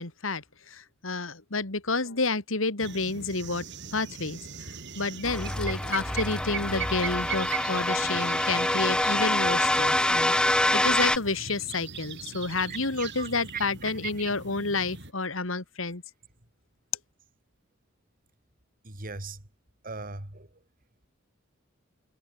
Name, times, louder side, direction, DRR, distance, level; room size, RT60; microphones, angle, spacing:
voice 1, 0.0-4.4 5.0-16.0, left 3 dB, 70° left, 2.6 m, -30 dB
sound 1, 2.8-15.1, right 7 dB, 60° right, 6.1 m, -40 dB
sound 2, 5.2-11.2, left 1 dB, 5° left, 0.4 m, -25 dB
voice 2, 13.5-13.9 18.8-19.4 19.8-20.5, right 4 dB, 45° right, 3.7 m, -38 dB
head